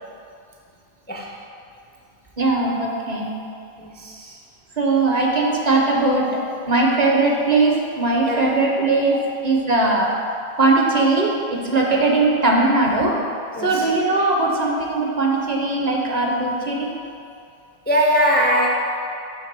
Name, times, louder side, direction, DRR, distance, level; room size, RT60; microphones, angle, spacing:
voice 1, 2.4-3.4 4.8-6.3 6.7-10.1 10.6-13.2 13.6-16.9, right 2 dB, 45° right, -1 dB, 0.8 m, -19 dB
voice 2, 3.8-4.4 8.2-8.4 11.9-12.0 13.6-13.9 17.9-18.7, equal, 15° left, -2 dB, 0.3 m, -21 dB
5.8 x 3.4 x 5.9 m, 2.4 s
omnidirectional pair, 1.1 m